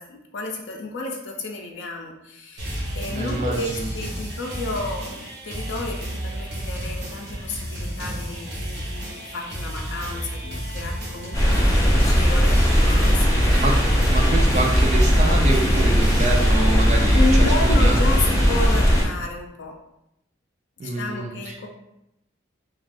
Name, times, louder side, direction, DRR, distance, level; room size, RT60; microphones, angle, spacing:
voice 1, 0.0-12.6 12.8-13.7 17.1-19.7 20.8-21.7, left 2 dB, 75° left, 1 dB, 0.4 m, -31 dB
sound 1, 2.6-16.5, equal, 65° right, 0.8 m, -32 dB
voice 2, 3.1-3.9 13.5-13.7 14.1-18.0 20.8-21.5, right 2 dB, 40° right, 1 dB, 0.4 m, -27 dB
sound 2, 11.3-19.0, equal, 20° left, 0.5 m, -18 dB
2.4 x 2.3 x 3.4 m, 0.82 s
head